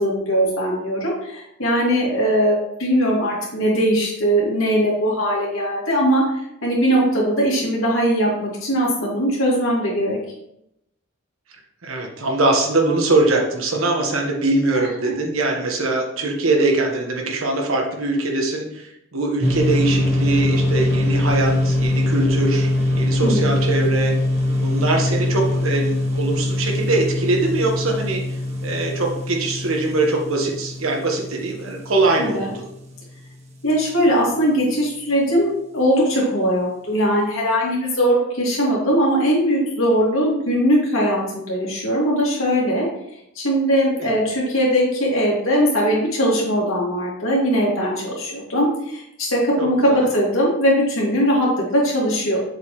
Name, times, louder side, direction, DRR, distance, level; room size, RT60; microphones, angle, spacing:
voice 1, 0.0-6.2 6.6-10.2 15.0-15.1 23.2-23.5 32.2-32.5 33.6-42.9 43.4-52.4, equal, 75° left, -4 dB, 2.3 m, -20 dB
voice 2, 11.8-22.7 23.0-24.1 24.6-28.2 28.6-32.6 44.0-44.1 49.6-50.0, right 2 dB, 85° right, 1 dB, 1.4 m, -22 dB
sound 1, 19.4-32.9, left 1 dB, 30° right, 1.0 m, -22 dB
6.7 x 4.9 x 3.1 m, 0.79 s
head